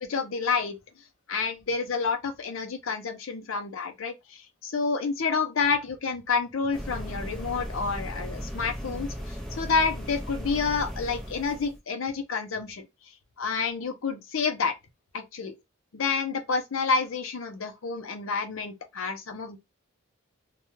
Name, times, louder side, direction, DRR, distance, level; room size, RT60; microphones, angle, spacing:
voice 1, 0.1-0.8 1.3-12.8 13.4-14.7 15.1-15.5 15.9-19.6, left 5 dB, 70° left, 0.6 m, -29 dB
sound 1, 6.7-11.8, equal, ahead, 0.4 m, -36 dB
2.2 x 2.2 x 3.0 m
head